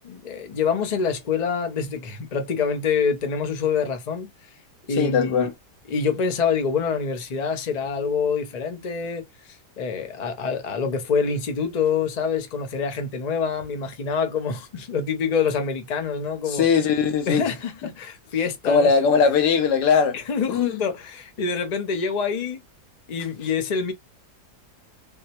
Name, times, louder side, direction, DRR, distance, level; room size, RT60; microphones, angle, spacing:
voice 1, 0.0-4.3 4.9-5.5 5.9-16.7 17.3-18.9 20.1-22.6 23.1-23.9, left 5 dB, 65° left, 0.4 m, -26 dB
voice 2, 4.9-5.5 16.5-17.4 18.6-20.2 20.5-20.8, left 6 dB, 85° left, 1.4 m, -20 dB
3.5 x 2.1 x 2.8 m
omnidirectional pair, 1.7 m